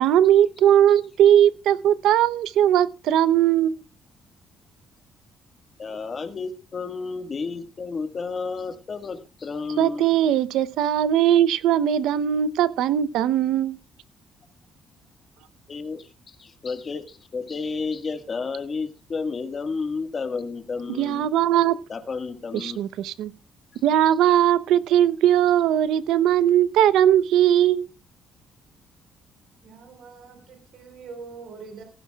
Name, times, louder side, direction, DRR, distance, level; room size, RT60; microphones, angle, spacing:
voice 1, 0.0-3.8 9.8-13.8 21.0-21.8 22.5-23.3 23.8-27.9, right 11 dB, 90° right, 0.7 m, -19 dB
voice 2, 5.8-10.0 15.7-21.3 21.9-22.8, left 4 dB, 30° left, 1.6 m, -31 dB
voice 3, 29.6-31.8, right 5 dB, 65° right, 3.9 m, -43 dB
17.5 x 15.0 x 2.3 m
cardioid pair, 140°, 0 cm